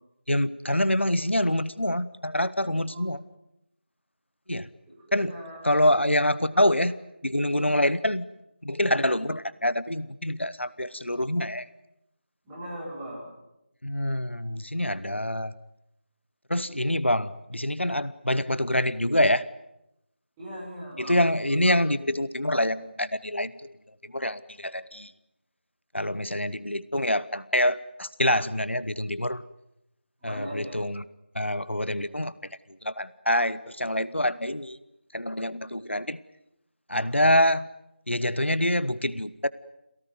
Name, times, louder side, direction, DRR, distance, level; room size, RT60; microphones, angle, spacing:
voice 1, 0.3-3.2 4.5-4.7 5.1-5.4 5.6-6.9 7.2-8.3 8.6-11.7 13.8-15.5 16.5-19.4 21.0-23.8 24.0-25.1 25.9-29.5 30.2-31.0 31.3-34.8 35.1-36.2 36.9-37.7 38.1-39.5, left 1 dB, 85° left, 17 dB, 1.2 m, -26 dB
voice 2, 2.6-3.1 5.1-5.6 6.1-6.2 6.5-6.8 7.5-7.7 12.4-13.3 20.4-21.2 30.2-30.8, equal, 5° right, -10 dB, 7.7 m, -40 dB
28.0 x 18.0 x 9.5 m, 0.85 s
figure-of-eight pair, 170°, 6 cm